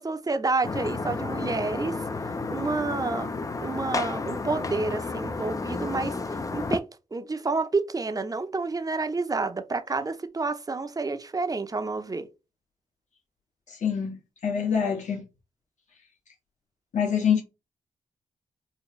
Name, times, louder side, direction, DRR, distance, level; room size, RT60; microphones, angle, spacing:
voice 1, 0.0-2.0 2.5-3.3 3.6-6.8 7.1-12.3, right 3 dB, 25° right, 0.6 m, -29 dB
sound 1, 0.6-6.8, left 3 dB, 25° left, 0.4 m, -31 dB
voice 2, 13.7-14.1 14.4-15.2 16.9-17.4, left 7 dB, 60° left, 1.4 m, -25 dB
4.5 x 2.1 x 3.1 m
supercardioid pair, 55°, 14 cm